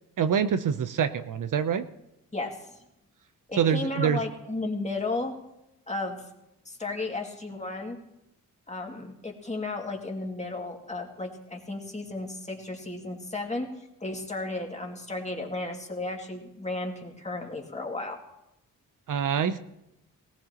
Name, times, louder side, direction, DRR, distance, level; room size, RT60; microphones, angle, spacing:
voice 1, 0.2-1.9 3.6-4.2 19.1-19.6, right 7 dB, 65° right, 11 dB, 0.7 m, -25 dB
voice 2, 2.3-2.8 3.5-5.3 5.9-6.2 6.7-8.0 8.7-13.7 14.0-18.2, left 2 dB, 20° left, 1 dB, 2.4 m, -34 dB
19.0 x 17.5 x 3.0 m, 0.89 s
cardioid pair, 85°, 34 cm